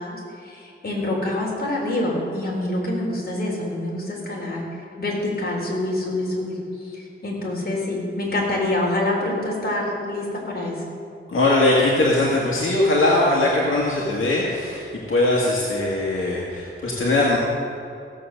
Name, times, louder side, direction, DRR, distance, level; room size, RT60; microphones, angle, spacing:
voice 1, 0.0-4.6 5.0-6.6 6.9-10.8, left 1 dB, 50° left, -3 dB, 3.8 m, -26 dB
voice 2, 11.3-14.8 15.1-17.4, left 2 dB, 75° left, -4 dB, 2.0 m, -20 dB
16.0 x 7.8 x 6.7 m, 2.5 s
wide cardioid pair, 100°, 21 cm